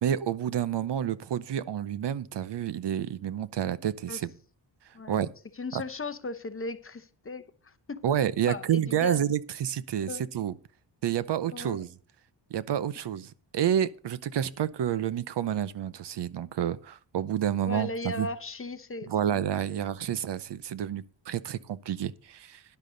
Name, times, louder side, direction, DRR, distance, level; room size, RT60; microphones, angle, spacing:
voice 1, 0.0-4.3 5.1-5.3 5.7-5.8 8.0-10.5 11.0-11.9 12.5-17.9 18.2-18.3 19.1-22.6, right 10 dB, 65° right, 0.7 m, -29 dB
voice 2, 5.6-7.7 8.5-9.2 10.1-10.3 11.5-11.8 17.7-19.4 19.7-19.8, left 2 dB, 30° left, 0.9 m, -37 dB
12.0 x 10.5 x 3.9 m
wide cardioid pair, 115°, 44 cm